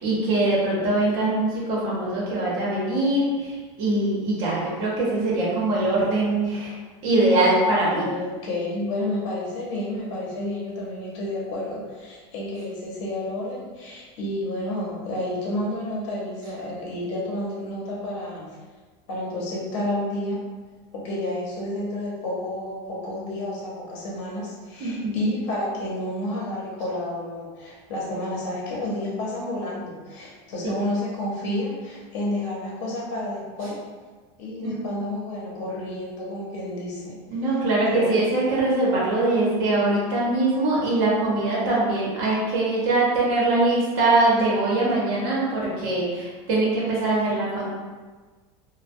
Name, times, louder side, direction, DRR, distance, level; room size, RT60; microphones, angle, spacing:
voice 1, 0.0-6.7 7.0-8.1 24.8-25.2 34.6-34.8 37.3-47.7, right 2 dB, 60° right, -6 dB, 0.8 m, -22 dB
voice 2, 8.0-18.6 19.1-20.4 20.9-33.8 34.4-37.2 37.9-38.2, left 1 dB, 70° left, -4 dB, 0.8 m, -30 dB
2.2 x 2.2 x 2.5 m, 1.4 s
supercardioid pair, 145°, 15 cm